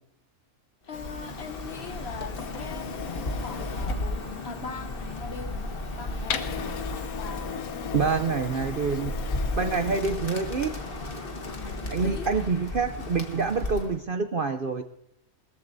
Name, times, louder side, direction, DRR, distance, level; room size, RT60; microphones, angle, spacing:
Printer, 0.9-10.0, left 8 dB, 75° left, 1.3 m, -38 dB
voice 1, 0.9-2.9 3.4-6.6 7.2-8.2 11.5-12.4, left 6 dB, 55° left, 0.8 m, -41 dB
Bird, 0.9-14.0, left 2 dB, 40° left, 1.6 m, -34 dB
voice 2, 7.9-9.1 9.6-10.8 11.9-14.8, right 5 dB, 50° right, 0.6 m, -27 dB
20.5 x 14.5 x 2.6 m
omnidirectional pair, 1.5 m